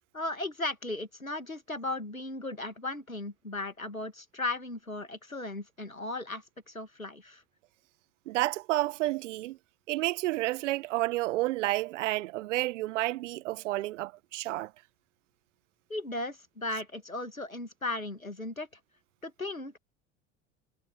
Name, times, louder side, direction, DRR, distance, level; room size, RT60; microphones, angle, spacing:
voice 1, 0.1-7.4 15.9-18.7 19.2-19.8, left 2 dB, 90° left, 2.2 m, -36 dB
voice 2, 8.3-9.6 9.9-14.7, right 17 dB, 60° right, 1.7 m, -30 dB
figure-of-eight pair, 70°, 40 cm